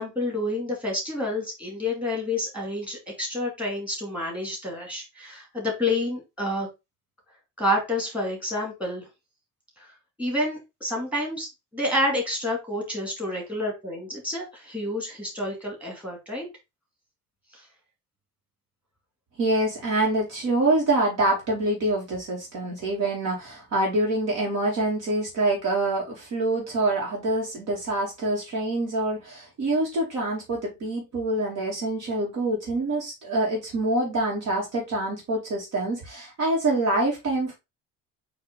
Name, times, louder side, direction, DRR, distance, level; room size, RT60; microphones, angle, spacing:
voice 1, 0.0-6.7 7.6-9.1 10.2-11.5 11.7-16.5 17.5-17.6, left 1 dB, 5° right, 2.4 m, -29 dB
voice 2, 19.4-37.5, right 2 dB, 45° right, 2.5 m, -26 dB
8.3 x 3.0 x 3.8 m
cardioid pair, 175°, 35 cm